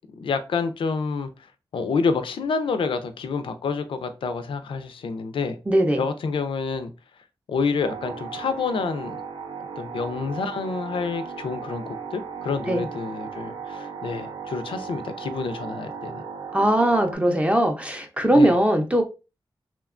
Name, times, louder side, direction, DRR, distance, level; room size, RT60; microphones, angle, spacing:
voice 1, 0.1-1.3 1.7-5.6 6.0-6.9 7.5-9.2 9.8-16.3 18.3-18.5, left 5 dB, 85° left, 0.3 m, -28 dB
voice 2, 5.7-6.0 12.7-12.8 16.5-19.0, right 1 dB, 15° right, 0.4 m, -20 dB
sound 1, 7.8-17.1, right 6 dB, 85° right, 0.4 m, -36 dB
2.7 x 2.2 x 2.4 m
wide cardioid pair, 110°, 9 cm